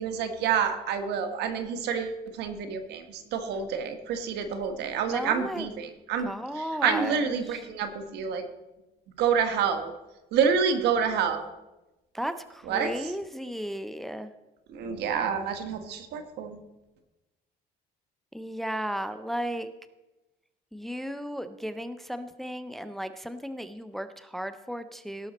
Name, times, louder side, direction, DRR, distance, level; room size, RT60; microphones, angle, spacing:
voice 1, 0.0-6.3 6.5-8.4 9.2-9.9 10.3-11.4 12.7-12.9 14.7-16.6, right 6 dB, 80° right, 7 dB, 1.3 m, -28 dB
voice 2, 5.1-5.7 6.2-7.6 12.1-14.3 18.3-19.7 20.7-25.3, equal, ahead, 10 dB, 0.5 m, -35 dB
17.5 x 6.2 x 4.2 m, 1.0 s
cardioid pair, 110°, 17 cm